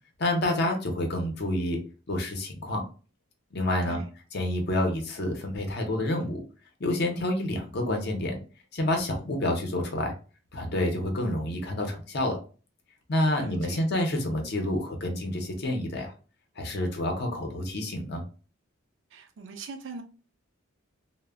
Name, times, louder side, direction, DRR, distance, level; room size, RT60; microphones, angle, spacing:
voice 1, 0.2-1.8 2.1-2.8 3.5-4.0 4.3-6.4 6.8-8.4 8.7-10.1 10.5-12.4 13.1-16.1 16.6-18.2, left 1 dB, 50° left, 0.6 m, -28 dB
voice 2, 13.4-13.8 19.1-20.0, right 4 dB, 60° right, 0.4 m, -41 dB
2.1 x 2.1 x 3.4 m
head